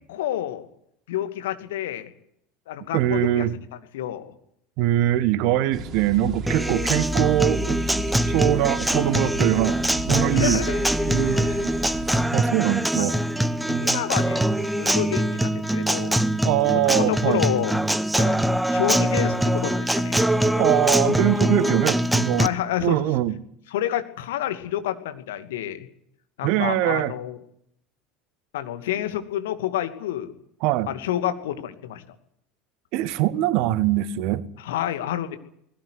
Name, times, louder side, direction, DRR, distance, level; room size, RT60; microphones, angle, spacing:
voice 1, 0.1-0.7 1.1-2.1 2.7-3.5 3.9-4.3 8.2-8.3 10.3-10.9 11.3-11.6 12.7-13.2 13.8-16.2 16.7-17.8 18.2-18.4 18.7-20.2 22.4-23.0 23.7-25.9 26.4-27.4 28.5-30.3 30.9-32.0 34.6-35.4, left 12 dB, 65° left, 2.5 m, -29 dB
voice 2, 2.9-3.5 4.8-7.8 8.3-9.8 10.1-10.7 11.1-11.7 12.3-13.2 13.7-14.0 16.4-17.4 20.6-22.5 22.8-23.4 26.4-27.1 30.6-30.9 32.9-34.4, right 14 dB, 55° right, 1.6 m, -22 dB
sound 1, 5.7-12.3, equal, 35° right, 3.7 m, -33 dB
Acoustic guitar, 6.5-22.5, right 1 dB, 5° right, 1.3 m, -23 dB
20.5 x 17.0 x 9.6 m
figure-of-eight pair, 70°, 0 cm